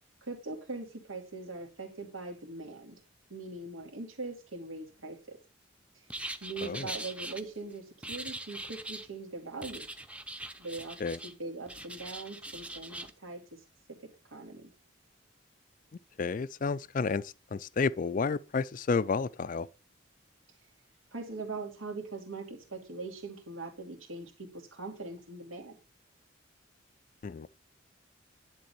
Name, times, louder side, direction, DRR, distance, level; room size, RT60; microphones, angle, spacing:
voice 1, 0.2-3.0 3.3-5.4 5.9-6.1 6.4-9.8 10.6-13.6 13.9-14.0 14.3-14.7 21.1-25.8, right 3 dB, 85° right, 2.7 m, -41 dB
sound 1, 6.1-7.4 8.0-9.1 9.6-11.3 11.7-13.1, right 1 dB, 5° right, 0.7 m, -41 dB
voice 2, 16.2-17.2 17.8-19.7 27.2-27.5, left 4 dB, 40° left, 0.4 m, -30 dB
10.5 x 3.9 x 7.0 m
head